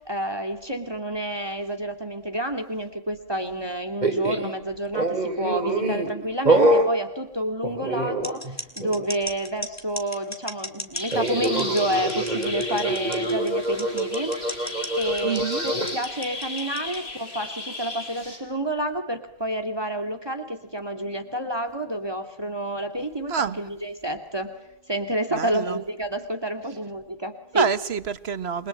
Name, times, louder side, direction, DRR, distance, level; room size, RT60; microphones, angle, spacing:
voice 1, 0.0-24.5 24.9-27.7, right 1 dB, 25° right, 7 dB, 2.3 m, -29 dB
sound 1, 4.0-4.5 4.9-6.1 6.5-6.9 7.6-8.5 8.8-9.1 11.1-16.0, right 2 dB, 45° right, 3.7 m, -25 dB
sound 2, 8.2-17.0, equal, 15° left, 2.7 m, -36 dB
sound 3, 10.9-18.4, left 2 dB, 85° left, 5.1 m, -35 dB
voice 2, 15.2-15.6 23.3-23.6 25.4-25.8 27.5-28.7, right 6 dB, 85° right, 14 dB, 1.5 m, -27 dB
28.5 x 22.5 x 8.8 m, 0.87 s
omnidirectional pair, 1.0 m